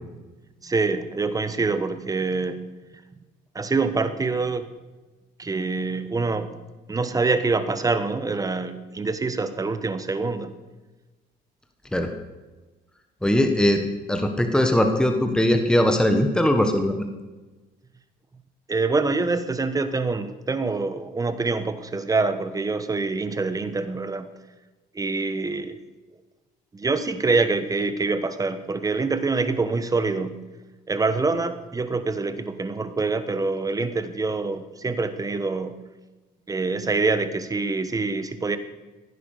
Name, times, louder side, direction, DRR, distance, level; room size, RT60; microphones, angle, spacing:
voice 1, 0.6-2.6 3.5-4.7 5.4-6.5 6.9-10.5 18.7-24.3 24.9-25.8 26.7-30.4 30.9-35.8 36.5-38.6, right 3 dB, 20° right, 11 dB, 1.3 m, -25 dB
voice 2, 13.2-13.8 14.1-17.1, left 1 dB, 5° left, 6 dB, 1.5 m, -20 dB
16.0 x 9.8 x 6.7 m, 1.2 s
cardioid pair, 110°, 17 cm